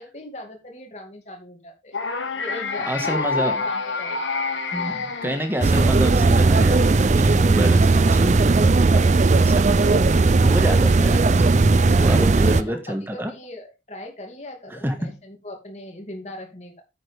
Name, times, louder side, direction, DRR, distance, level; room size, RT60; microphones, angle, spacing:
voice 1, 0.0-1.9 2.4-4.2 12.0-12.3 12.5-16.8, left 1 dB, 35° left, 2 dB, 2.5 m, -39 dB
sound 1, 1.9-6.1, left 4 dB, 90° left, 1.5 m, -27 dB
voice 2, 2.9-3.6 4.7-9.1 9.4-9.7 10.4-11.5 12.0-13.3 14.8-15.2, equal, 10° right, 6 dB, 1.6 m, -28 dB
sound 2, 5.6-12.6, right 3 dB, 40° right, 0.5 m, -17 dB
9.5 x 8.2 x 3.5 m, 0.26 s
head